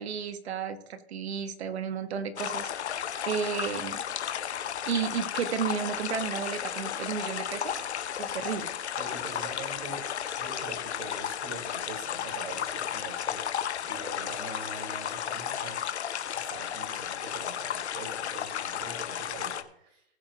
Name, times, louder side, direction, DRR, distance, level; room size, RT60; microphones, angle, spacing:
voice 1, 0.0-4.0 4.8-7.8 8.2-8.7, right 7 dB, 75° right, 10 dB, 1.5 m, -33 dB
sound 1, 2.4-19.6, left 9 dB, 80° left, 1.0 m, -34 dB
voice 2, 8.3-8.6 9.0-10.0 10.4-13.4 13.8-15.8 16.3-20.0, right 3 dB, 50° right, -1 dB, 4.7 m, -43 dB
19.0 x 7.7 x 3.0 m, 0.75 s
hypercardioid pair, 130°, 33 cm